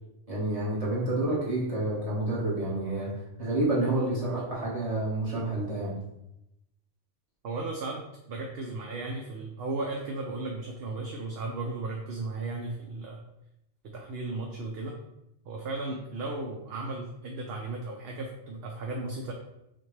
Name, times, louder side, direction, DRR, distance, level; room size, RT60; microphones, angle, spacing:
voice 1, 0.3-3.1 3.4-6.0, right 2 dB, 30° right, -7 dB, 1.4 m, -29 dB
voice 2, 7.4-13.2 13.8-15.0 15.5-19.3, right 2 dB, 65° right, 0 dB, 0.8 m, -35 dB
5.8 x 2.2 x 3.2 m, 0.87 s
omnidirectional pair, 1.2 m